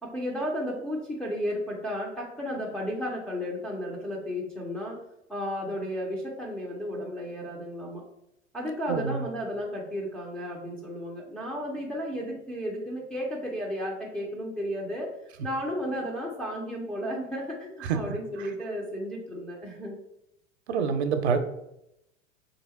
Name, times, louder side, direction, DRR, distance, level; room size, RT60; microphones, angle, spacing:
voice 1, 0.0-5.0 5.3-8.0 8.5-15.1 15.4-20.0, equal, 5° left, -4 dB, 0.3 m, -33 dB
voice 2, 8.9-9.2 17.8-18.0 20.7-21.4, right 6 dB, 60° right, 8 dB, 0.6 m, -26 dB
3.3 x 2.8 x 4.1 m, 0.82 s
figure-of-eight pair, 85°, 38 cm